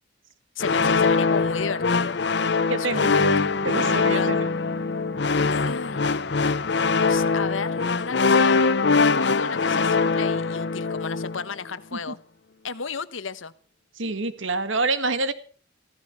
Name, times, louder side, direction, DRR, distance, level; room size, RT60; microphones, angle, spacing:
voice 1, 0.5-2.2 2.8-3.6 4.1-4.3 5.5-6.1 6.9-8.6 9.0-12.2 12.6-13.5, left 5 dB, 80° left, 14 dB, 1.2 m, -33 dB
sound 1, 0.6-11.5, left 4 dB, 60° left, 0.7 m, -22 dB
voice 2, 2.7-4.4 11.9-12.1 13.9-15.3, right 3 dB, 75° right, 12 dB, 1.6 m, -27 dB
Bass guitar, 3.2-7.3, equal, 15° left, 1.2 m, -38 dB
15.5 x 14.0 x 5.9 m, 0.41 s
head